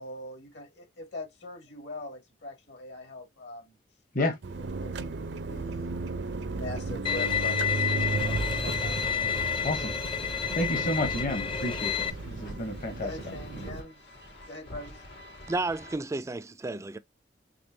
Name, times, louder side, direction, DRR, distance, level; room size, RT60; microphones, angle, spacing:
voice 1, 0.0-3.8 4.8-6.2 6.4-9.0 13.0-14.0 14.5-15.0, left 2 dB, 75° left, 2.3 m, -42 dB
sound 1, 4.4-13.8, right 3 dB, 75° right, 0.6 m, -34 dB
Bowed string instrument, 7.0-12.1, left 7 dB, 30° left, 0.6 m, -30 dB
voice 2, 10.6-13.7, left 1 dB, 50° left, 1.0 m, -31 dB
sound 2, 11.1-15.9, left 1 dB, 90° left, 3.2 m, -48 dB
voice 3, 15.5-17.0, right 2 dB, 15° right, 0.3 m, -32 dB
5.3 x 3.4 x 2.7 m
head